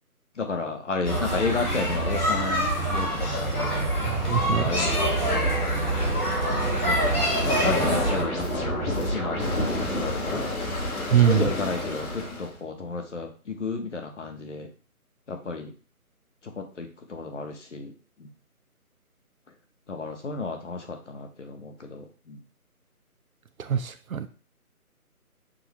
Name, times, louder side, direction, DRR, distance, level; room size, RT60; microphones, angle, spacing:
voice 1, 0.4-3.9 4.4-5.6 6.3-9.4 9.7-10.5 11.2-14.7 15.3-15.7 16.4-17.9 18.2-18.3 19.9-22.4, left 4 dB, 50° left, 4 dB, 0.9 m, -32 dB
sound 1, 1.0-8.2, right 1 dB, 85° left, 2.0 m, -25 dB
sound 2, 3.5-9.8, right 3 dB, 45° right, 1.4 m, -36 dB
voice 2, 4.1-4.7 11.1-11.5 23.6-24.3, right 8 dB, 65° right, 11 dB, 0.5 m, -23 dB
sound 3, 6.8-12.6, left 1 dB, 70° left, 1.4 m, -30 dB
6.2 x 2.4 x 3.0 m, 0.37 s
figure-of-eight pair, 160°, 44 cm